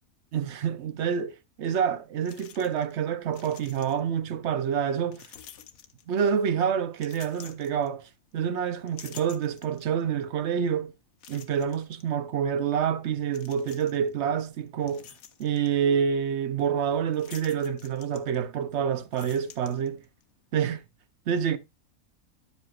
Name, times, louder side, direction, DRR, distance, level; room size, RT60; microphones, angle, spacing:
voice 1, 0.3-5.3 6.1-10.9 11.3-15.1 15.4-20.0 20.5-20.8 21.3-21.6, right 8 dB, 60° right, 0.9 m, -27 dB
sound 1, 1.7-1.8 2.3-3.0 3.2-4.2 5.1-6.4 6.9-8.3 8.7-10.0 10.5-10.6 11.2-12.0 13.3-14.1 14.6-15.7 17.1-18.7 19.0-20.2, left 9 dB, 75° left, 1.2 m, -50 dB
10.5 x 7.7 x 2.3 m
omnidirectional pair, 1.5 m